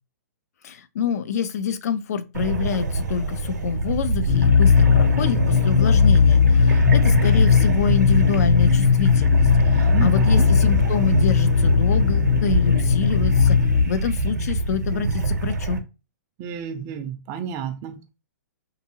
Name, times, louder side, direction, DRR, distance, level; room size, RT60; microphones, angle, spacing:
voice 1, 0.6-15.8, left 7 dB, 60° left, 0.4 m, -27 dB
sound 1, 2.3-15.8, right 3 dB, 80° right, 0.7 m, -25 dB
sound 2, 4.3-13.8, left 6 dB, 80° left, 0.9 m, -18 dB
voice 2, 9.9-10.5 16.4-18.1, right 8 dB, 25° right, 0.4 m, -31 dB
2.7 x 2.6 x 2.7 m
hypercardioid pair, 155°, 9 cm